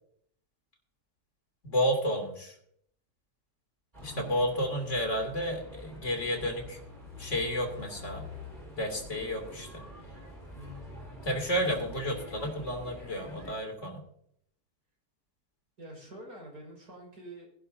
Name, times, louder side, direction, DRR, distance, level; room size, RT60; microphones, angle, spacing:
voice 1, 1.6-2.5 4.0-6.8 7.2-8.3 8.7-9.8 11.2-14.0, equal, 50° left, 3 dB, 3.2 m, -31 dB
sound 1, 3.9-13.5, left 1 dB, 30° right, 4.6 m, -46 dB
voice 2, 4.1-4.5 10.5-11.1 15.8-17.5, right 1 dB, 80° right, -2 dB, 5.9 m, -46 dB
20.5 x 11.0 x 2.8 m, 0.69 s
omnidirectional pair, 1.7 m